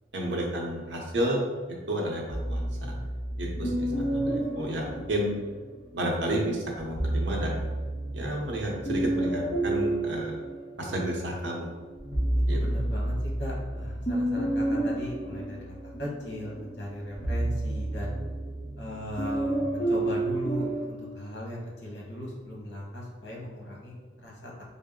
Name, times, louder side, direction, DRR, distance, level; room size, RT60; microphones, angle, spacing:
voice 1, 0.1-1.5 1.9-2.9 3.4-5.3 5.9-7.7 8.1-10.4 10.8-11.7 12.5-12.6, right 1 dB, 80° right, -2 dB, 0.8 m, -31 dB
sound 1, 2.3-5.8 6.8-11.2 11.6-20.9, right 1 dB, 25° left, 0.7 m, -30 dB
voice 2, 12.5-18.1 18.8-24.0 24.2-24.5, equal, 70° left, -3 dB, 1.1 m, -37 dB
3.7 x 2.0 x 3.6 m, 1.5 s
head